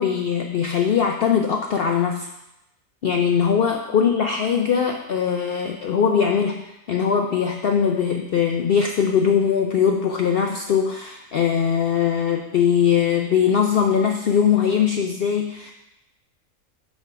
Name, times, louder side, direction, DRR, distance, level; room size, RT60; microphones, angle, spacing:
voice 1, 0.0-2.3 3.0-15.7, left 7 dB, 65° left, 3 dB, 0.6 m, -21 dB
7.8 x 4.5 x 4.7 m, 0.90 s
omnidirectional pair, 1.5 m